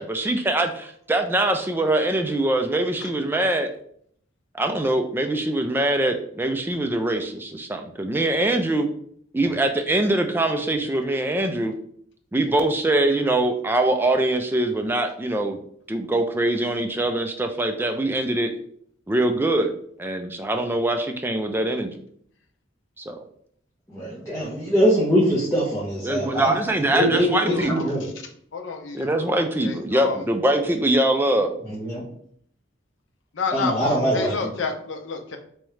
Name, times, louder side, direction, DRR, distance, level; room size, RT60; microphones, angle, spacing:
voice 1, 0.0-3.7 4.5-8.9 9.3-11.7 12.3-15.6 15.9-18.5 19.1-19.7 20.0-22.0 23.0-23.2 26.0-27.9 28.9-31.5, right 1 dB, 10° right, 5 dB, 0.3 m, -23 dB
voice 2, 23.9-26.5 26.9-28.1 31.7-32.0 33.5-34.5, equal, 15° left, -10 dB, 1.1 m, -22 dB
voice 3, 27.4-27.9 28.5-29.3 29.6-30.2 33.3-33.7 34.1-35.4, left 4 dB, 65° left, 4 dB, 0.6 m, -30 dB
3.5 x 3.1 x 3.1 m, 0.64 s
head